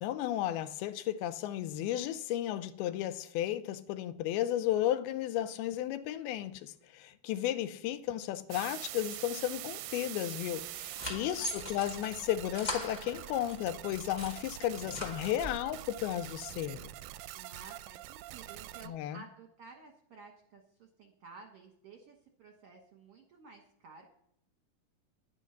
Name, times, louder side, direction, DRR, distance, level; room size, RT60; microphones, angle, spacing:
voice 1, 0.0-16.9 18.9-19.2, left 12 dB, 85° left, 2.6 m, -34 dB
sound 1, 8.5-18.9, right 15 dB, 80° right, 2.1 m, -45 dB
sound 2, 10.5-13.6 14.0-15.7, equal, 30° left, 0.8 m, -41 dB
voice 2, 11.1-11.8 17.3-24.1, right 4 dB, 65° right, 1.5 m, -53 dB
11.5 x 10.0 x 5.8 m
omnidirectional pair, 4.4 m